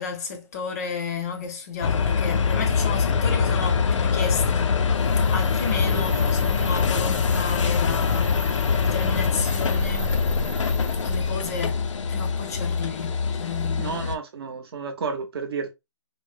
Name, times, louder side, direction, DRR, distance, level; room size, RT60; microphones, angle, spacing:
voice 1, 0.0-10.2 11.0-11.8 12.1-14.1, left 5 dB, 30° left, 0.6 m, -33 dB
sound 1, 1.8-14.2, left 5 dB, 80° left, 0.5 m, -23 dB
sound 2, 4.9-11.3, right 2 dB, 10° right, 0.5 m, -42 dB
voice 2, 5.9-6.3 13.8-15.7, right 5 dB, 55° right, 0.8 m, -32 dB
3.5 x 2.1 x 2.5 m
hypercardioid pair, 155°, 15 cm